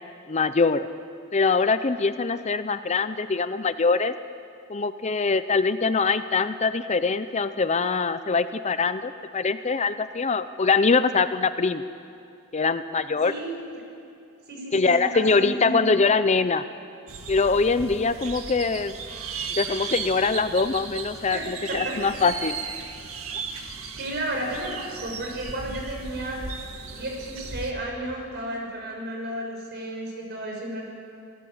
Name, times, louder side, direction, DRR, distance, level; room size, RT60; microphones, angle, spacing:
voice 1, 0.3-0.9 1.3-4.1 4.7-11.8 12.5-13.3 14.7-16.6 17.3-18.9 19.6-22.6, left 4 dB, 30° left, 12 dB, 0.6 m, -23 dB
voice 2, 13.2-13.8 14.5-15.9 21.3-21.9 24.0-26.4 26.9-30.8, right 1 dB, 50° right, 0 dB, 6.2 m, -33 dB
sound 1, 17.1-27.7, right 5 dB, 80° right, 1.9 m, -36 dB
27.0 x 18.5 x 7.9 m, 2.6 s
head